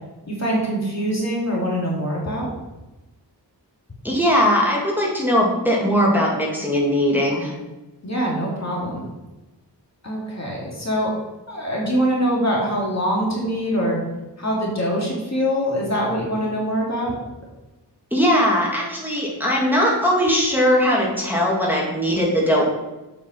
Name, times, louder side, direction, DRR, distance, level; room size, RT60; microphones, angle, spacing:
voice 1, 0.3-2.5 8.0-9.1 10.0-11.1 11.5-14.0 14.4-17.2, equal, 40° left, -3 dB, 2.4 m, -23 dB
voice 2, 4.0-7.5 18.1-22.6, equal, 5° right, -4 dB, 2.1 m, -19 dB
7.6 x 5.3 x 5.3 m, 1.0 s
wide cardioid pair, 80°, 42 cm